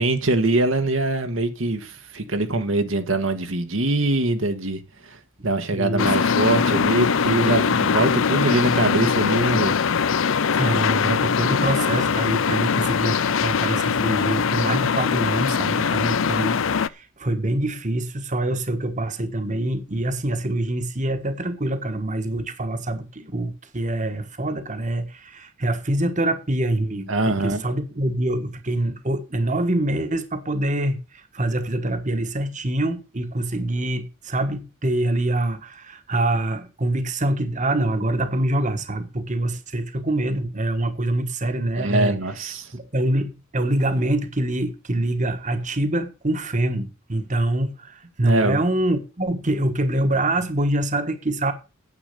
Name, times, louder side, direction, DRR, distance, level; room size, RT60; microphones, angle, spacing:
voice 1, 0.0-5.2 5.4-9.8 27.1-27.6 41.7-42.7 48.2-48.6, right 2 dB, 70° right, 1.4 m, -23 dB
voice 2, 5.7-6.2 10.5-51.5, right 1 dB, 35° right, 1.4 m, -25 dB
sound 1, 6.0-16.9, left 6 dB, 70° left, 0.6 m, -22 dB
9.9 x 7.9 x 6.8 m
head